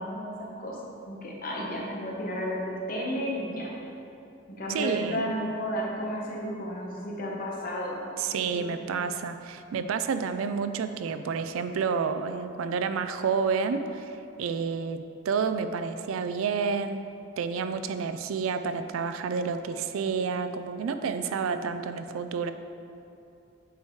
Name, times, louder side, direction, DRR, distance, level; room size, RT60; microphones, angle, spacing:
voice 1, 0.0-3.7 4.5-8.1 8.5-8.7, equal, 40° left, -3 dB, 1.0 m, -33 dB
voice 2, 4.7-5.3 8.2-17.0 17.4-22.5, right 5 dB, 80° right, 9 dB, 0.3 m, -30 dB
8.2 x 4.9 x 3.1 m, 2.7 s
head